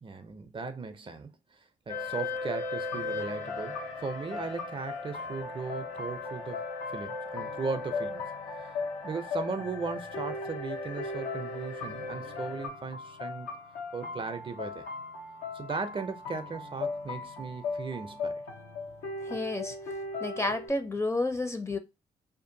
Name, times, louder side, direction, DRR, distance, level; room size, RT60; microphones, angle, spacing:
voice 1, 0.0-1.6 1.9-6.6 6.9-8.3 9.0-13.6 13.9-14.9 15.5-18.4, right 4 dB, 35° right, 0.5 m, -37 dB
sound 1, 1.9-12.7, left 3 dB, 55° left, 1.1 m, -39 dB
sound 2, 2.9-20.7, left 3 dB, 85° left, 0.8 m, -38 dB
voice 2, 19.2-19.8 20.2-21.8, left 2 dB, 15° left, 0.5 m, -30 dB
2.5 x 2.5 x 2.6 m
supercardioid pair, 50°, 15 cm